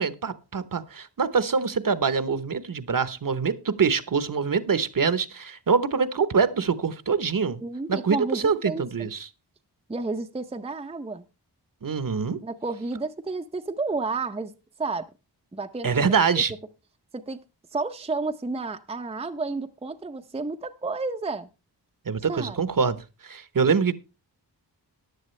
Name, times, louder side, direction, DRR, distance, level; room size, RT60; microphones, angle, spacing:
voice 1, 0.0-7.6 7.9-9.3 11.8-12.4 15.8-16.5 22.1-23.0 23.2-23.9, right 5 dB, 50° right, 14 dB, 1.0 m, -24 dB
voice 2, 7.6-9.1 9.9-11.2 12.4-14.5 14.8-15.1 15.5-16.1 16.3-16.4 17.1-17.4 17.7-21.5 22.3-22.6, right 3 dB, 15° right, 7 dB, 0.6 m, -31 dB
15.0 x 10.5 x 3.2 m, 0.28 s
wide cardioid pair, 115°, 42 cm